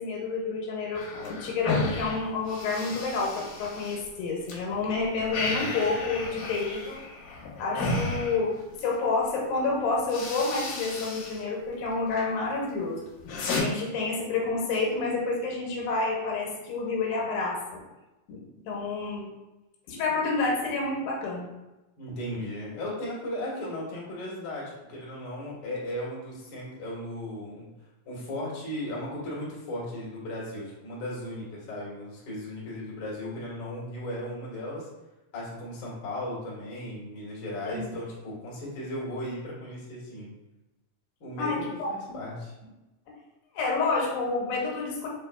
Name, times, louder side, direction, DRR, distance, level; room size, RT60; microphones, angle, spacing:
voice 1, 0.0-7.0 7.6-13.0 13.5-17.6 18.3-18.4 18.7-19.3 19.9-21.5 37.7-37.8 41.4-41.9 43.5-45.1, left 3 dB, 90° left, -2 dB, 2.6 m, -29 dB
sound 1, 0.9-4.6 4.9-9.0 9.6-9.7 10.0-11.4 11.7-12.3 12.7-13.6, left 2 dB, 70° left, 2.3 m, -33 dB
voice 2, 22.0-27.7 28.0-34.9 35.3-40.3 41.2-42.5, left 1 dB, 45° left, -6 dB, 1.7 m, -36 dB
6.6 x 3.5 x 2.3 m, 1.0 s
omnidirectional pair, 4.0 m